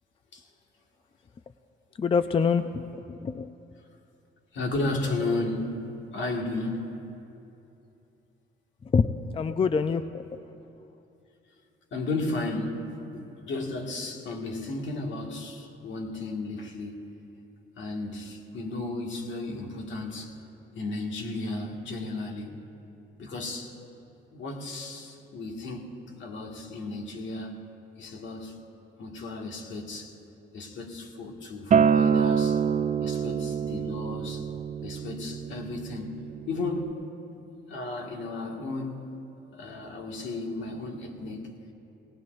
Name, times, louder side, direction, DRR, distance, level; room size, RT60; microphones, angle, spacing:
voice 1, 2.0-3.5 8.8-10.4, left 5 dB, 30° left, 10 dB, 0.4 m, -26 dB
voice 2, 4.5-5.9 6.1-7.0 11.9-17.0 17.8-20.3 20.8-22.6 23.2-23.8 24.3-28.6 29.0-30.1 30.5-32.6 33.0-34.4 34.8-37.0 37.7-39.1 39.5-41.5, left 2 dB, 70° left, 1 dB, 2.0 m, -34 dB
Acoustic guitar, 31.7-36.9, right 7 dB, 40° right, 0.4 m, -26 dB
19.0 x 18.5 x 2.6 m, 2.7 s
cardioid pair, 90°, 20 cm